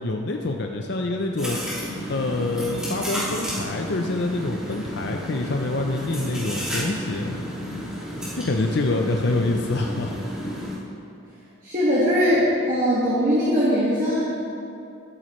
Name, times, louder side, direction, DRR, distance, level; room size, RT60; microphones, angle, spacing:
voice 1, 0.0-7.4 8.4-10.1, left 2 dB, 50° left, 2 dB, 0.5 m, -26 dB
sound 1, 1.4-10.7, equal, 5° right, 2.3 m, -32 dB
voice 2, 11.6-14.2, equal, 35° right, -8 dB, 1.7 m, -20 dB
12.5 x 10.5 x 3.1 m, 2.6 s
head